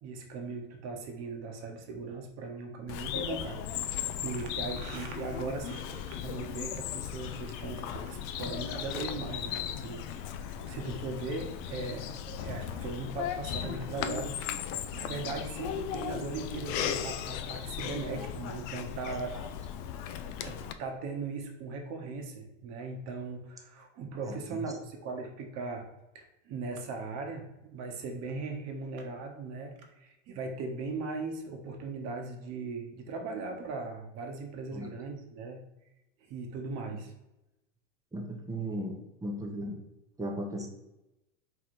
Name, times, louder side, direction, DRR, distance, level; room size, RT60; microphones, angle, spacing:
voice 1, 0.0-19.4 20.2-25.9 26.1-35.6 36.3-37.1, right 3 dB, 40° right, 3 dB, 1.1 m, -39 dB
Bird vocalization bird call bird song, 2.9-20.7, left 9 dB, 45° left, 0.4 m, -37 dB
voice 2, 38.1-39.8 40.2-40.7, right 1 dB, 10° right, 1 dB, 0.8 m, -36 dB
3.9 x 3.1 x 4.3 m, 0.94 s
hypercardioid pair, 105°, 38 cm